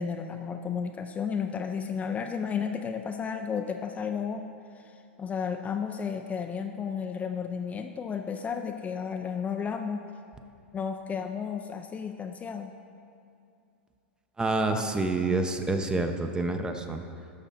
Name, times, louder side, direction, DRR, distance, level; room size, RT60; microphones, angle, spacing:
voice 1, 0.0-4.4 5.2-10.0 10.7-12.7 14.7-14.8 15.3-15.4, left 6 dB, 20° left, 5 dB, 0.5 m, -33 dB
voice 2, 14.4-17.0, right 3 dB, 10° right, 6 dB, 0.7 m, -28 dB
12.5 x 6.1 x 4.2 m, 2.6 s
hypercardioid pair, 105°, 6 cm